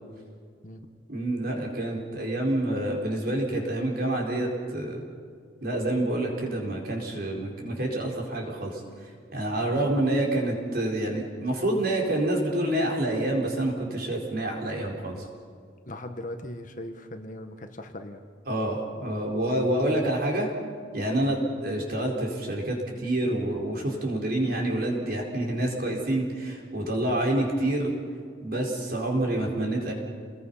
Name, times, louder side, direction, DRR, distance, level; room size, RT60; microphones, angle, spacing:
voice 1, 1.1-5.0 5.6-8.8 9.3-15.2 18.5-20.5 20.9-27.9 28.4-29.9, right 1 dB, 50° right, 0 dB, 4.7 m, -27 dB
voice 2, 15.9-18.2 21.2-21.4 28.7-28.9, left 1 dB, 40° left, 6 dB, 1.4 m, -39 dB
29.5 x 20.5 x 5.7 m, 2.1 s
head